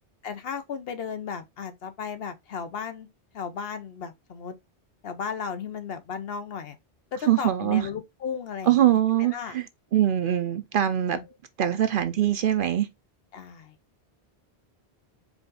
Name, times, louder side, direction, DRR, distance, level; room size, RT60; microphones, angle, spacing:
voice 1, 0.2-3.1 3.3-4.5 5.0-6.8 7.1-9.0 9.3-9.6 11.1-11.2 13.3-13.7, left 6 dB, 65° left, 0.9 m, -35 dB
voice 2, 7.3-7.9 8.7-9.6 9.9-11.2 11.6-12.9, right 11 dB, 60° right, 0.7 m, -23 dB
4.8 x 2.5 x 3.8 m
omnidirectional pair, 1.1 m